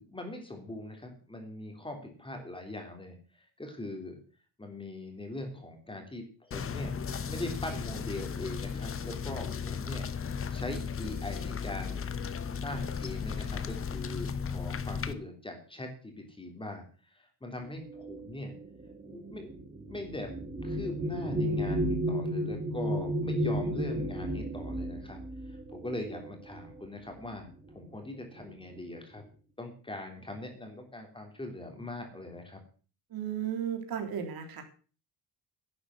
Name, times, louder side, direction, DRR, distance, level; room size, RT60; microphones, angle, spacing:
voice 1, 0.0-4.1 4.6-10.1 10.5-12.0 12.5-18.5 19.0-19.5 19.9-20.3 20.6-25.2 25.5-29.2 29.6-32.6, left 1 dB, 10° left, 4 dB, 3.4 m, -41 dB
sound 1, 6.5-15.1, left 6 dB, 30° left, 1.0 m, -35 dB
sound 2, 17.9-26.8 27.7-27.9 28.2-28.8, equal, 20° right, 1.7 m, -33 dB
voice 2, 33.1-34.6, right 9 dB, 55° right, 6 dB, 3.3 m, -34 dB
11.5 x 8.6 x 7.6 m, 0.38 s
cardioid pair, 145°, 42 cm